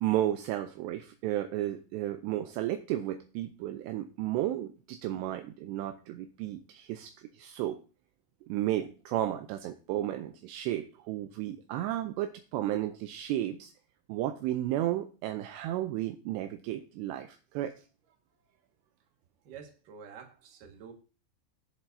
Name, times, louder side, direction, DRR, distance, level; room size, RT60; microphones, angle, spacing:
voice 1, 0.0-7.8 8.5-13.7 14.1-17.7, right 13 dB, 80° right, 7 dB, 2.6 m, -33 dB
voice 2, 19.4-20.9, right 6 dB, 55° right, 3 dB, 2.8 m, -49 dB
18.0 x 7.3 x 2.7 m, 0.35 s
omnidirectional pair, 5.3 m